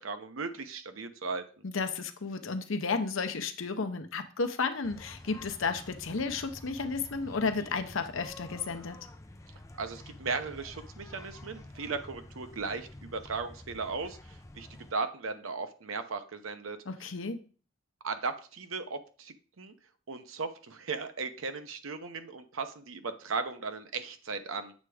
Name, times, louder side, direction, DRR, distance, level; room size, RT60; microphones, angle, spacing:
voice 1, 0.0-1.4 9.8-14.2 14.5-16.8 18.0-19.7 20.1-24.7, right 4 dB, 75° right, 9 dB, 0.8 m, -36 dB
voice 2, 1.6-9.0 16.9-17.4, left 4 dB, 70° left, 9 dB, 0.8 m, -33 dB
sound 1, 4.8-14.9, left 1 dB, 15° left, 0.6 m, -49 dB
7.3 x 3.4 x 4.8 m, 0.39 s
head